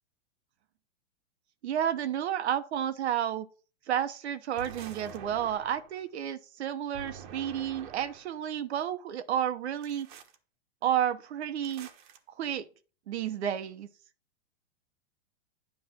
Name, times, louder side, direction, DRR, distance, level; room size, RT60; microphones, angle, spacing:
voice 1, 1.6-3.5 3.9-10.1 10.8-11.9 12.4-12.7 13.1-13.9, right 10 dB, 80° right, 1.1 m, -31 dB
sound 1, 4.6-6.0 6.9-8.4 9.8-10.4 11.6-12.2, right 7 dB, 45° right, 1.2 m, -47 dB
9.8 x 3.3 x 6.2 m
supercardioid pair, 155°, 33 cm